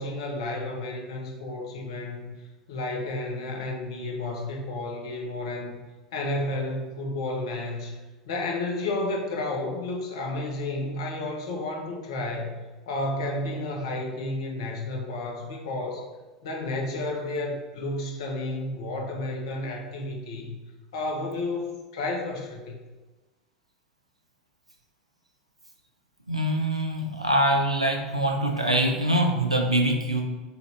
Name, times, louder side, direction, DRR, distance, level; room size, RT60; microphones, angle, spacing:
voice 1, 0.0-2.3 2.7-5.8 6.1-8.0 8.3-12.6 12.9-16.0 16.4-20.6 20.9-22.8, left 2 dB, 60° left, 1 dB, 0.7 m, -31 dB
voice 2, 26.3-30.2, right 1 dB, 90° right, 2 dB, 0.5 m, -24 dB
4.0 x 2.8 x 3.2 m, 1.2 s
figure-of-eight pair, 75°, 3 cm